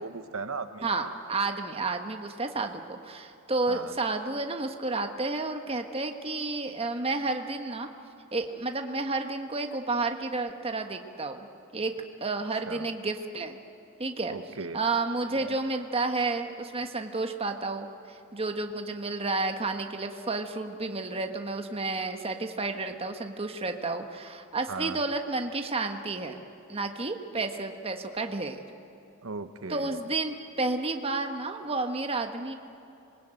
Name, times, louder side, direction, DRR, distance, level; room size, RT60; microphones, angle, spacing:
voice 1, 0.0-1.1 2.6-2.7 3.7-3.9 12.7-12.9 14.3-14.8 15.3-15.6 24.7-25.0 29.2-30.1, right 4 dB, 80° right, 9 dB, 1.1 m, -38 dB
voice 2, 0.8-7.9 8.3-11.5 11.7-11.9 12.2-13.6 14.0-14.3 14.7-26.4 26.7-28.6 29.7-32.5, right 3 dB, 30° right, 5 dB, 1.4 m, -31 dB
26.5 x 21.0 x 9.1 m, 2.9 s
head